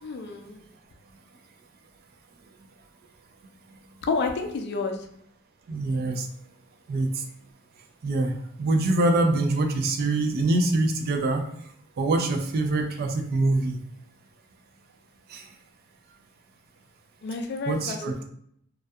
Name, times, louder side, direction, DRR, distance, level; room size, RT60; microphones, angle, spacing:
voice 1, 0.0-0.6 4.1-5.1 17.2-18.2, left 4 dB, 55° left, 5 dB, 0.4 m, -30 dB
voice 2, 5.7-6.3 6.9-7.2 8.0-11.5 12.0-13.8 15.3-15.5 17.7-18.1, right 2 dB, 45° right, 6 dB, 0.3 m, -24 dB
2.6 x 2.2 x 2.2 m, 0.69 s
head